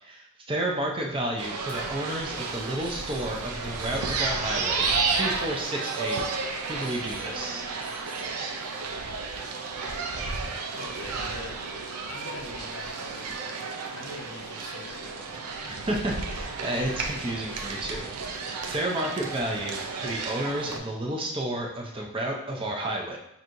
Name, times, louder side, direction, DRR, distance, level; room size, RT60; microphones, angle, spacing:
voice 1, 0.0-7.6 15.7-18.1 18.6-23.2, right 1 dB, 25° right, 0 dB, 0.5 m, -31 dB
sound 1, 1.4-20.8, right 4 dB, 85° right, 0.5 m, -32 dB
sound 2, 1.7-1.8 2.0-2.1 2.8-3.2 3.8-4.2 4.8-6.2 6.8-7.2 7.8-8.2, equal, 5° left, 1.1 m, -47 dB
voice 2, 10.7-11.6 12.1-15.7, left 3 dB, 55° left, 2 dB, 0.5 m, -44 dB
5.9 x 2.7 x 2.5 m, 0.82 s
head